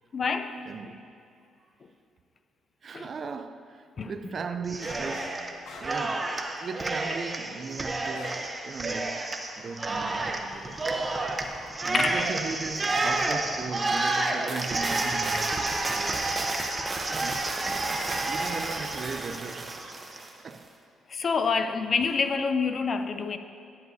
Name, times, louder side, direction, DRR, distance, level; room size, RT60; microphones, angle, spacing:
voice 1, 0.1-0.6 2.9-3.1 4.0-4.1 11.9-12.2 21.1-23.4, left 5 dB, 45° left, 0.4 m, -27 dB
voice 2, 0.7-1.2 2.8-5.4 5.8-6.3 6.6-11.2 11.8-16.2 17.0-17.4 18.3-20.0 20.4-20.7, right 5 dB, 45° right, 0.4 m, -38 dB
Cheering, 4.7-5.5 5.8-20.3, right 2 dB, 25° right, 0.7 m, -30 dB
sound 1, 4.8-5.4 5.6-8.5 8.9-9.0 9.6-9.9, left 3 dB, 75° left, 1.2 m, -46 dB
10.5 x 9.3 x 2.7 m
cardioid pair, 90°, 0 cm